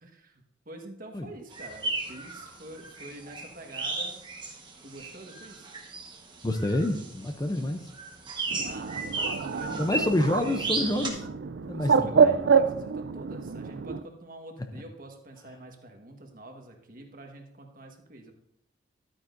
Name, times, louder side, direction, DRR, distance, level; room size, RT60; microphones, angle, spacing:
voice 1, 0.0-4.2 4.8-5.7 8.0-10.2 11.7-18.3, right 1 dB, 45° right, 3 dB, 1.4 m, -46 dB
sound 1, 1.5-11.1, right 3 dB, 25° right, 1.2 m, -35 dB
voice 2, 6.4-7.9 9.8-11.3 11.7-12.3, left 1 dB, 20° left, 6 dB, 0.5 m, -28 dB
Bird, 8.5-14.0, right 6 dB, 60° right, 0.4 m, -26 dB
12.5 x 9.1 x 2.6 m, 0.76 s
head